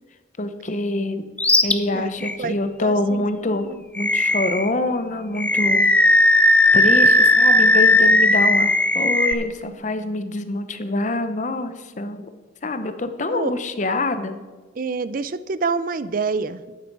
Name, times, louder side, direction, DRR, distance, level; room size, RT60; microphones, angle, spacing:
voice 1, 0.4-1.2 1.6-6.2 6.7-12.3 12.6-14.4, left 2 dB, 40° left, 9 dB, 0.8 m, -25 dB
Animal, 1.4-1.7 2.2-2.4 4.0-4.7 5.4-9.3, left 1 dB, 10° left, 0.4 m, -16 dB
voice 2, 1.9-2.5 2.8-3.8 9.6-9.7 13.3-13.5 14.8-16.7, right 4 dB, 50° right, 15 dB, 0.5 m, -27 dB
11.5 x 9.4 x 4.7 m, 1.3 s
head